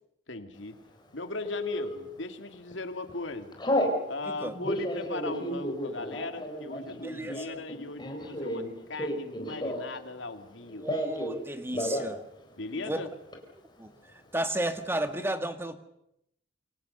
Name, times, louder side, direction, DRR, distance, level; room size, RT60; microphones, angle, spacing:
voice 1, 0.3-0.8 1.1-3.6 4.1-10.9 12.6-13.1, left 2 dB, 80° left, 8 dB, 2.4 m, -38 dB
Telephone, 1.4-2.0 2.5-2.8 3.1-4.0 4.5-10.0 10.3-11.4 11.7-12.1 12.4-12.5 12.8-13.4, equal, 25° left, 4.3 m, -32 dB
voice 2, 7.0-7.6 10.8-12.2 12.8-13.1 13.8-15.8, right 1 dB, 15° right, 9 dB, 1.7 m, -33 dB
28.0 x 24.0 x 6.7 m, 0.78 s
head